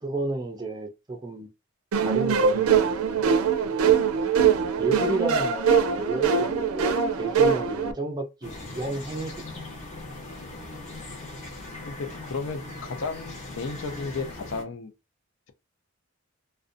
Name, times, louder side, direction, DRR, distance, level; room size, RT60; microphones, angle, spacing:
voice 1, 0.0-1.5 2.0-3.3 4.8-9.4, right 2 dB, 20° right, 0.4 m, -32 dB
sound 1, 1.9-7.9, right 6 dB, 90° right, 0.4 m, -22 dB
voice 2, 3.9-4.3 10.4-10.6 11.9-14.9, left 4 dB, 65° left, 0.5 m, -34 dB
sound 2, 8.4-14.6, left 2 dB, 35° left, 0.8 m, -40 dB
2.5 x 2.2 x 2.5 m
head